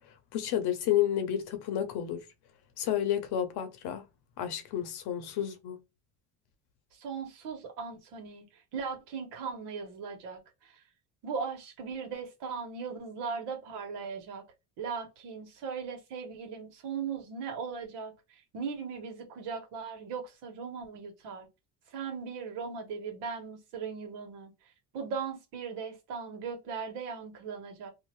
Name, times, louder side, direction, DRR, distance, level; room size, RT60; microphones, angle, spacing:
voice 1, 0.3-2.2 2.8-4.0 4.4-5.8, left 11 dB, 70° left, 0.8 m, -30 dB
voice 2, 6.9-10.8 11.2-14.4 14.8-21.5 21.9-24.5 24.9-27.9, right 5 dB, 80° right, 1.5 m, -38 dB
2.8 x 2.5 x 3.0 m
cardioid pair, 160°, 40 cm